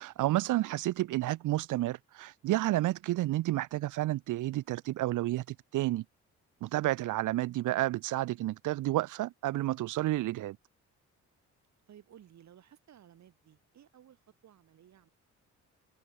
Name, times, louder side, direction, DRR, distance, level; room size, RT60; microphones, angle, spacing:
voice 1, 0.0-6.0 6.6-10.6, right 16 dB, 85° right, 1.6 m, -30 dB
voice 2, 11.9-15.1, right 10 dB, 65° right, 6.4 m, -57 dB
cardioid pair, 90°, 30 cm